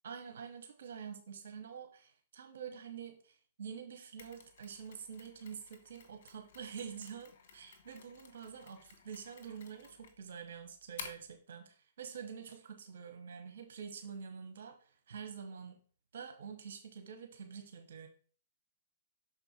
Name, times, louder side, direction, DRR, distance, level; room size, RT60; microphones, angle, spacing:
voice 1, 0.0-15.8 16.1-18.1, right 7 dB, 65° right, 4 dB, 1.2 m, -47 dB
Mechanisms, 4.2-11.4, left 6 dB, 60° left, 1.6 m, -53 dB
6.2 x 4.4 x 4.4 m, 0.42 s
hypercardioid pair, 120°, 0 cm